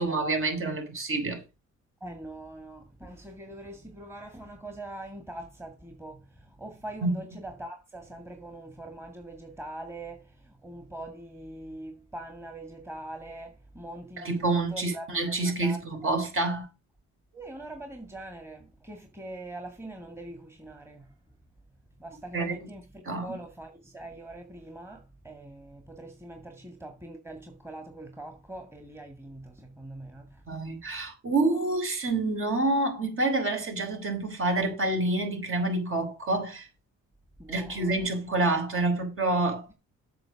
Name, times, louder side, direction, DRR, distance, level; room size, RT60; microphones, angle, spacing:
voice 1, 0.0-1.4 7.0-7.2 14.2-16.7 22.3-22.7 23.0-23.4 30.5-36.7 37.5-39.7, right 2 dB, 45° right, 4.9 m, -28 dB
voice 2, 2.0-6.2 6.6-10.2 10.6-15.1 15.4-16.1 17.3-21.0 22.0-22.8 23.2-30.3 37.4-38.1, right 1 dB, 10° right, 2.1 m, -43 dB
7.8 x 6.8 x 6.4 m
cardioid pair, 90°, 30 cm